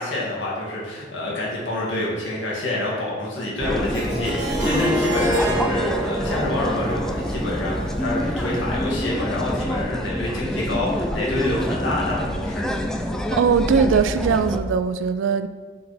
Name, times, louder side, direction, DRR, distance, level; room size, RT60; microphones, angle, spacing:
voice 1, 0.0-12.6, left 1 dB, 80° left, -5 dB, 1.7 m, -27 dB
sound 1, 3.6-14.6, equal, 5° left, 0.3 m, -26 dB
Harp, 3.9-8.9, right 2 dB, 65° right, 1.4 m, -28 dB
voice 2, 13.3-15.5, right 6 dB, 90° right, 12 dB, 0.3 m, -20 dB
6.3 x 4.2 x 4.1 m, 1.5 s
head